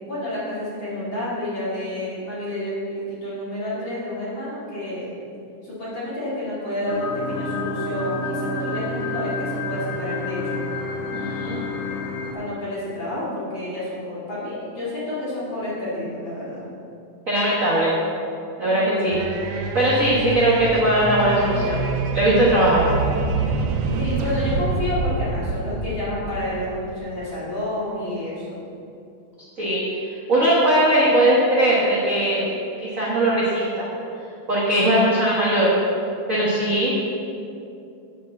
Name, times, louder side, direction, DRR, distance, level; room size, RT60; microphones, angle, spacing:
voice 1, 0.1-5.1 5.6-10.6 12.3-16.6 18.6-19.2 23.9-28.5, left 1 dB, 40° left, -9 dB, 3.0 m, -29 dB
sound 1, 6.9-12.3, left 3 dB, 90° left, 2.7 m, -29 dB
voice 2, 11.1-11.6 17.3-17.9 18.6-19.2 19.5-21.8 22.1-22.9 29.6-29.9 30.3-32.5 32.8-33.9 34.5-35.7 36.3-37.0, right 1 dB, 45° right, -7 dB, 1.0 m, -19 dB
sound 2, 19.1-27.0, right 3 dB, 85° right, 1.3 m, -26 dB
8.1 x 5.2 x 7.3 m, 2.6 s
omnidirectional pair, 3.5 m